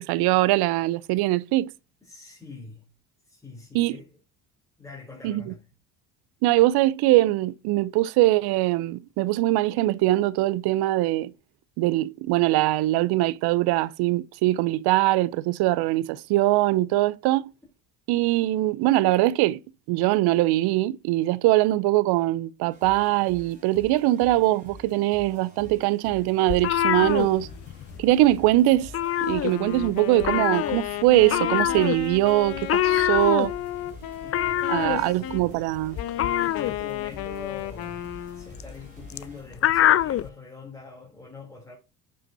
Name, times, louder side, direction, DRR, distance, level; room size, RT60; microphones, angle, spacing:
voice 1, 0.0-1.7 3.7-4.0 5.2-5.4 6.4-11.3 11.8-17.5 18.1-19.6 19.9-27.5 28.0-28.9 29.2-33.5 34.7-36.0, right 16 dB, 70° right, 0.6 m, -22 dB
voice 2, 2.0-2.9 3.3-4.2 4.8-5.7 34.2-35.3 36.2-41.8, left 3 dB, 10° left, 3.1 m, -44 dB
sound 1, 22.7-39.4, equal, 20° right, 4.0 m, -48 dB
sound 2, 26.5-28.0 28.2-28.5 28.8-29.9 30.2-40.3, left 12 dB, 35° left, 0.5 m, -25 dB
Wind instrument woodwind instrument, 29.3-35.5 36.0-38.6, left 12 dB, 60° left, 1.1 m, -34 dB
8.8 x 5.6 x 2.7 m
supercardioid pair, 85°, 40 cm